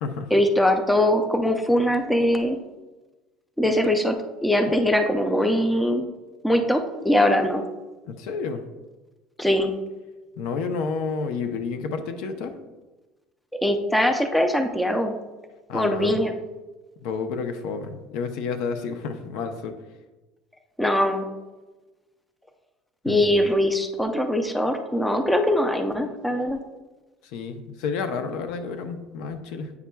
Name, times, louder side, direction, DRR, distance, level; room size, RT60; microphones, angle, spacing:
voice 1, 0.3-2.6 3.6-6.1 6.4-7.6 9.4-9.7 13.6-15.1 15.7-16.3 20.8-21.3 23.0-26.6, left 1 dB, 5° left, 5 dB, 0.4 m, -22 dB
voice 2, 8.0-8.6 10.4-12.5 15.7-16.1 17.0-19.7 23.1-23.3 27.3-29.7, left 5 dB, 70° left, 7 dB, 0.6 m, -30 dB
8.3 x 5.7 x 2.2 m, 1.2 s
cardioid pair, 160°, 0 cm